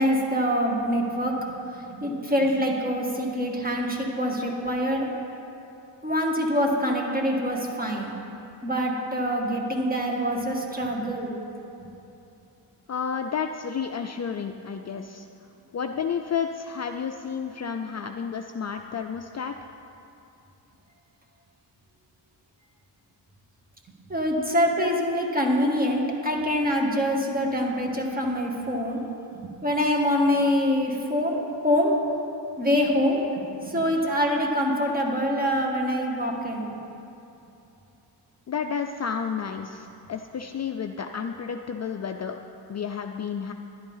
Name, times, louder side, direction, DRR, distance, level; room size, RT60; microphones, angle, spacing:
voice 1, 0.0-1.6 2.0-5.1 6.0-8.1 8.6-11.3 11.8-11.9 24.1-29.0 29.3-32.0 32.6-33.2 33.6-36.8, equal, 20° right, 0 dB, 2.0 m, -25 dB
voice 2, 12.9-15.3 15.7-19.5 38.5-42.4 42.7-43.5, left 6 dB, 40° left, 5 dB, 0.5 m, -31 dB
11.0 x 11.0 x 5.6 m, 2.8 s
cardioid pair, 100°, 43 cm